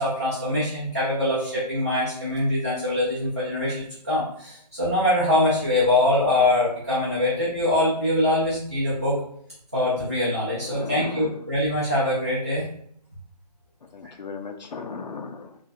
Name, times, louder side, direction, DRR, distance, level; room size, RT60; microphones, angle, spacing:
voice 1, 0.0-9.2 9.7-12.6, left 1 dB, 20° right, -9 dB, 0.5 m, -23 dB
voice 2, 10.7-11.4 13.9-15.6, left 4 dB, 85° left, 4 dB, 0.6 m, -36 dB
4.0 x 2.3 x 2.6 m, 0.67 s
hypercardioid pair, 180°, 21 cm